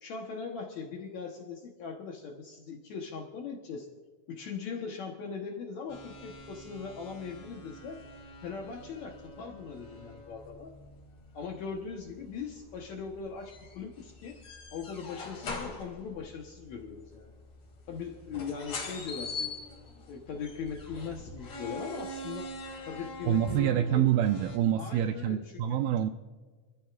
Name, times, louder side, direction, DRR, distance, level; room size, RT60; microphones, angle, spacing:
voice 1, 0.0-3.9 4.3-8.0 8.4-10.7 11.3-14.4 14.7-17.3 17.9-19.5 20.1-22.5 22.9-24.1 24.8-25.8, left 5 dB, 65° left, 2 dB, 2.0 m, -40 dB
sound 1, 5.9-24.6, left 2 dB, 45° left, 3.3 m, -44 dB
voice 2, 23.3-26.1, right 10 dB, 80° right, 8 dB, 2.2 m, -26 dB
25.5 x 14.5 x 2.5 m, 1.4 s
omnidirectional pair, 4.6 m